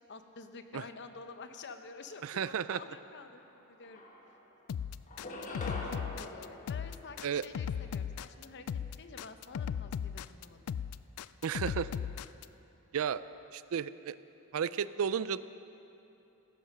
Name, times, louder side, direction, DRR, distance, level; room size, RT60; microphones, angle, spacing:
voice 1, 0.1-4.0 4.3-4.4 5.5-10.7, left 4 dB, 50° left, 8 dB, 0.8 m, -49 dB
voice 2, 2.2-2.8 7.2-7.4 11.4-11.9 12.9-13.2 13.5-14.2 14.5-15.4, right 7 dB, 65° right, 16 dB, 0.4 m, -33 dB
sound 1, 3.4-3.5 3.8-4.6 5.1-7.7, left 2 dB, 35° left, 1.4 m, -44 dB
sound 2, 4.7-12.4, left 7 dB, 80° left, 0.3 m, -37 dB
16.0 x 10.0 x 6.5 m, 3.0 s
head